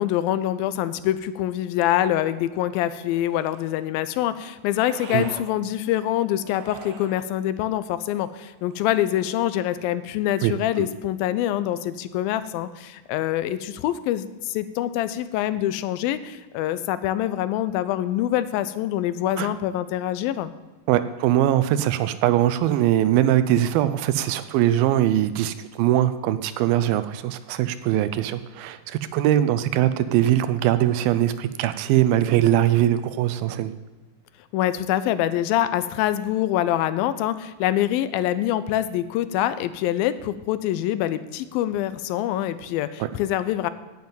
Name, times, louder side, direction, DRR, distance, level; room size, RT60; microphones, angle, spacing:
voice 1, 0.0-20.5 34.5-43.7, left 12 dB, 80° left, 13 dB, 2.3 m, -25 dB
sound 1, 3.0-3.9 4.8-5.5 6.4-7.3 8.6-9.4, right 5 dB, 65° right, 1.9 m, -43 dB
voice 2, 10.4-10.9 19.4-19.5 20.9-33.7, right 12 dB, 85° right, 13 dB, 2.4 m, -21 dB
9.4 x 7.4 x 9.0 m, 1.2 s
omnidirectional pair, 4.3 m